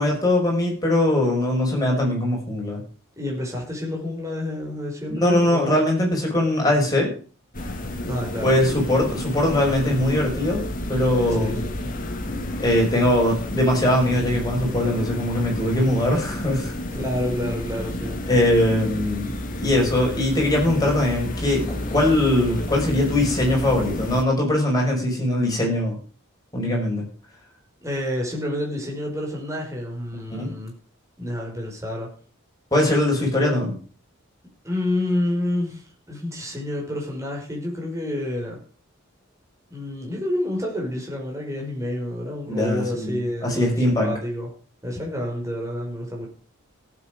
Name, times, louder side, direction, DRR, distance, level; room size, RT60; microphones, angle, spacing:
voice 1, 0.0-2.8 5.1-7.1 8.4-11.5 12.6-16.7 18.3-19.3 19.6-26.0 26.5-27.1 30.3-30.5 32.7-33.7 42.5-43.2 43.4-44.1, left 1 dB, 20° left, -1 dB, 6.0 m, -21 dB
voice 2, 3.2-5.8 8.0-8.7 11.3-11.9 16.9-18.2 27.8-30.7 31.2-32.1 34.6-38.6 39.7-44.5 44.8-46.3, left 1 dB, 15° right, -1 dB, 5.3 m, -29 dB
sound 1, 7.5-24.2, left 1 dB, 40° left, 2.0 m, -31 dB
17.0 x 8.6 x 5.1 m, 0.39 s
head